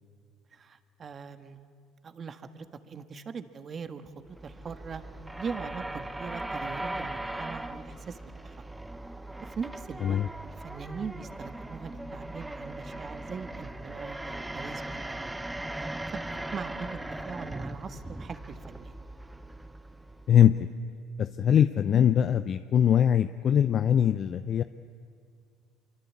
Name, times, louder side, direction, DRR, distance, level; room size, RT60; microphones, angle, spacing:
voice 1, 0.5-1.6 2.0-4.1 4.4-5.0 5.4-8.6 9.4-10.2 10.4-15.3 15.8-16.2 16.5-17.0 17.2-18.9, right 5 dB, 40° right, 10 dB, 1.6 m, -41 dB
sound 1, 4.3-20.6, right 1 dB, 10° right, 1.2 m, -39 dB
voice 2, 20.3-20.6 21.2-24.6, left 9 dB, 50° left, 12 dB, 0.6 m, -22 dB
25.0 x 24.5 x 8.6 m, 2.3 s
supercardioid pair, 85°, 0 cm